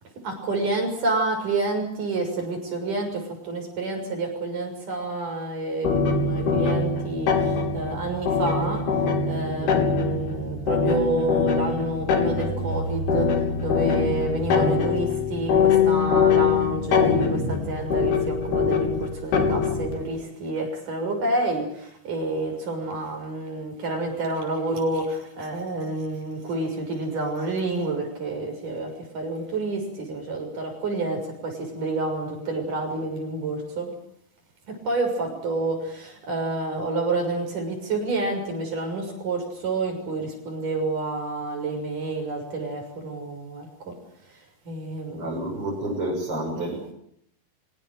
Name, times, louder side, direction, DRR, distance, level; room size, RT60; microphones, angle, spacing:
voice 1, 0.2-8.8 9.2-13.3 13.6-33.9 34.7-43.9 44.7-45.5 46.5-46.9, right 2 dB, 55° right, 3 dB, 8.0 m, -29 dB
sound 1, 5.8-20.0, left 5 dB, 85° left, 5.1 m, -23 dB
voice 2, 45.2-46.7, right 1 dB, 35° right, -3 dB, 7.4 m, -29 dB
25.0 x 17.5 x 9.2 m, 0.71 s
omnidirectional pair, 4.4 m